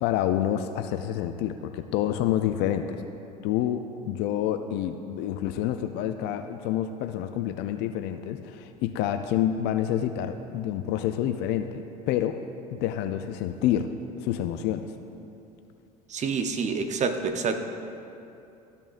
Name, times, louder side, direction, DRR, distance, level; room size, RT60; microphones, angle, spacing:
voice 1, 0.0-3.0 3.4-12.4 12.7-13.9 14.2-14.9, left 11 dB, 55° left, 8 dB, 0.5 m, -28 dB
voice 2, 16.1-17.6, right 5 dB, 35° right, 7 dB, 0.8 m, -27 dB
14.0 x 5.2 x 2.5 m, 2.7 s
hypercardioid pair, 75°, 21 cm